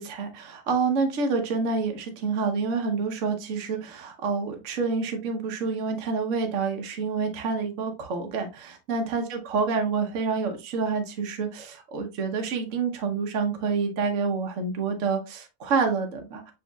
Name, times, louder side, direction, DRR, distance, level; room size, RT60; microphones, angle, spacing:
voice 1, 0.0-16.4, right 4 dB, 55° right, 4 dB, 1.1 m, -28 dB
8.1 x 2.7 x 2.3 m, 0.27 s
omnidirectional pair, 1.8 m